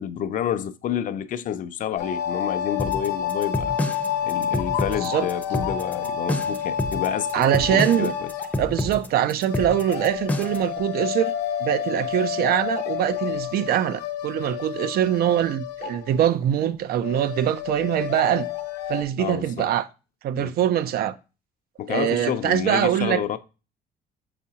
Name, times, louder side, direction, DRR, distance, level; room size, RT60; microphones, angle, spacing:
voice 1, 0.0-3.8 4.2-8.3 19.2-19.7 20.4-20.5 21.8-23.4, left 9 dB, 50° left, 0.5 m, -29 dB
sound 1, 2.0-16.3 16.6-16.7 17.0-19.0, left 9 dB, 75° left, 0.9 m, -29 dB
sound 2, 2.8-10.7, left 1 dB, 10° left, 0.6 m, -28 dB
voice 2, 7.3-8.1 8.6-11.3 11.6-18.5 18.9-19.9 20.2-21.2 21.9-23.2, right 11 dB, 65° right, 0.5 m, -23 dB
7.0 x 4.9 x 2.8 m
cardioid pair, 110°, 17 cm